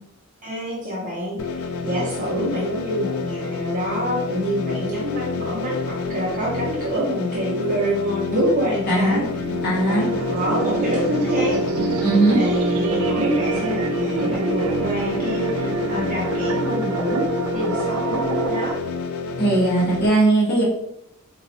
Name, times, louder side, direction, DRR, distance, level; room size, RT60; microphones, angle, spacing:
voice 1, 0.4-9.2 9.9-11.6 12.3-18.8, equal, 35° right, -5 dB, 0.8 m, -26 dB
sound 1, 1.4-20.1, left 4 dB, 65° left, 0.4 m, -29 dB
voice 2, 8.9-9.2 9.6-10.1 12.0-12.4 19.4-20.6, right 2 dB, 50° left, -5 dB, 1.1 m, -19 dB
sound 2, 9.2-18.7, right 3 dB, 75° right, 0.4 m, -26 dB
3.9 x 2.3 x 2.7 m, 0.76 s
head